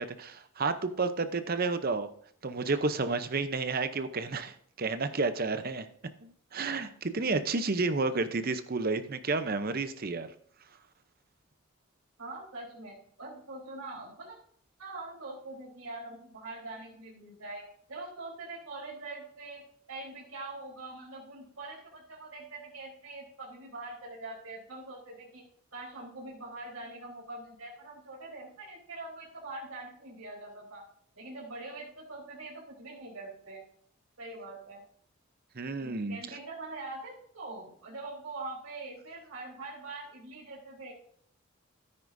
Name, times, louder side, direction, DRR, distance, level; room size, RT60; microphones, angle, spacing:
voice 1, 0.0-2.1 2.4-5.9 6.2-10.3 35.6-36.2, right 3 dB, 45° right, 10 dB, 0.7 m, -31 dB
voice 2, 12.2-14.4 14.8-25.4 25.7-30.8 31.1-33.6 34.2-34.8 35.8-40.9, right 2 dB, 80° right, -5 dB, 3.9 m, -43 dB
13.0 x 9.8 x 2.7 m, 0.64 s
head